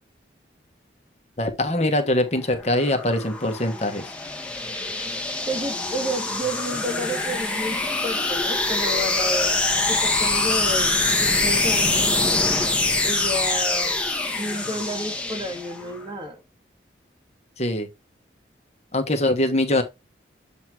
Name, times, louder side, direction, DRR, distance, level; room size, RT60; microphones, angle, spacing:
voice 1, 1.4-4.1 17.6-17.9 18.9-19.8, left 1 dB, 35° left, 1.3 m, -23 dB
sound 1, 2.6-16.0, left 2 dB, 5° left, 1.4 m, -24 dB
voice 2, 5.4-9.6 9.9-12.1 13.0-14.0 14.4-16.4, right 1 dB, 25° right, 1.5 m, -31 dB
8.0 x 2.9 x 4.5 m
head